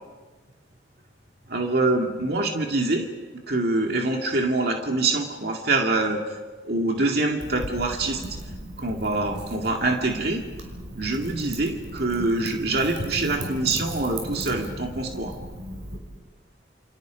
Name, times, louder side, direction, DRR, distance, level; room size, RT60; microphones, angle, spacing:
voice 1, 1.5-3.1 3.5-6.4 6.6-8.2 8.8-10.4 11.0-15.4, right 2 dB, 55° right, 2 dB, 2.2 m, -25 dB
Wind / Fire, 7.4-16.0, right 1 dB, 80° right, 5.6 m, -36 dB
29.5 x 29.0 x 5.2 m, 1.3 s
head